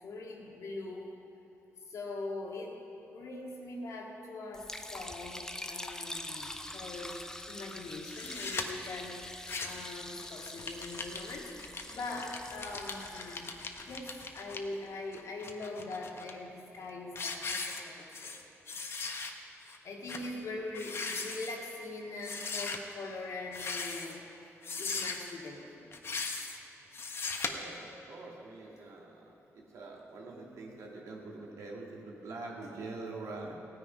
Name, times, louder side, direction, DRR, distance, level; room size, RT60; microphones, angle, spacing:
voice 1, 0.0-1.1 1.9-2.8 3.1-7.2 7.5-13.5 13.8-18.3 19.8-24.2 24.8-25.9 30.3-30.7, left 2 dB, 70° left, -1 dB, 2.2 m, -42 dB
Liquid, 4.5-14.7, left 1 dB, 10° left, 0.7 m, -45 dB
sound 1, 8.1-8.6 9.3-9.9 10.2-14.6 15.1-16.3 16.7-16.9 17.1-18.4 18.7-19.3 19.7-19.8 20.1-20.3 20.7-21.5 22.2-22.8 23.5-24.2 24.6-25.3 25.9-26.6 26.9-27.5, left 4 dB, 50° left, 1.1 m, -38 dB
voice 2, 27.4-33.6, right 3 dB, 80° right, -2 dB, 2.2 m, -45 dB
16.5 x 9.6 x 5.2 m, 2.9 s
cardioid pair, 90°, 5 cm